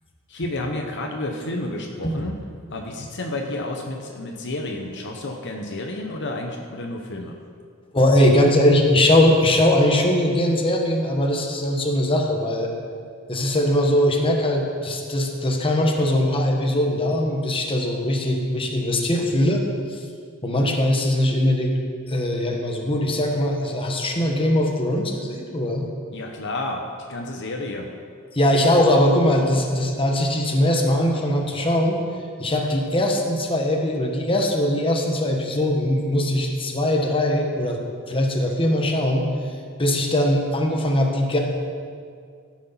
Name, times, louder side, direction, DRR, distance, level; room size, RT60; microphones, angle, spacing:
voice 1, 0.3-2.4 2.7-7.4 26.1-26.8 27.1-27.9, left 2 dB, 55° left, 2 dB, 0.9 m, -30 dB
voice 2, 7.9-12.7 13.3-19.6 19.9-20.0 20.4-21.8 22.1-25.9 28.3-32.0 32.4-37.8 38.1-39.5 39.8-41.4, left 1 dB, 25° left, 1 dB, 1.2 m, -21 dB
14.0 x 6.4 x 5.7 m, 2.2 s
head